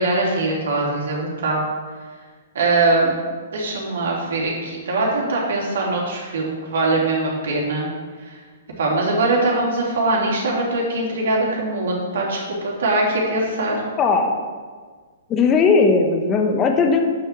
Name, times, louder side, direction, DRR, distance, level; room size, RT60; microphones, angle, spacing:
voice 1, 0.0-1.6 2.5-3.1 3.5-7.9 8.2-8.4 8.8-13.8, right 2 dB, 65° right, -2 dB, 3.4 m, -22 dB
voice 2, 14.0-14.5 15.3-17.0, left 4 dB, 25° left, 3 dB, 1.4 m, -17 dB
9.3 x 7.0 x 6.2 m, 1.5 s
figure-of-eight pair, 115°, 0 cm